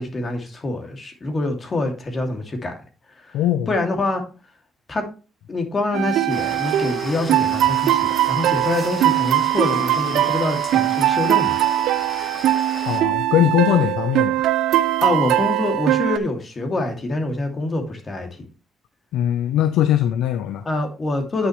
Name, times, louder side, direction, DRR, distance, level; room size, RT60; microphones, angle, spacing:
voice 1, 0.0-2.8 3.1-3.4 3.7-4.2 4.9-5.1 5.5-11.6 15.0-18.4 20.6-21.5, left 2 dB, 35° left, 2.6 m, -25 dB
voice 2, 3.3-3.7 12.8-14.4 19.1-20.7, left 11 dB, 90° left, 0.6 m, -20 dB
sound 1, 5.9-16.2, right 13 dB, 85° right, 0.5 m, -20 dB
sound 2, 6.3-13.0, left 1 dB, 10° left, 5.4 m, -35 dB
9.8 x 6.4 x 3.2 m
cardioid pair, 90°, 0 cm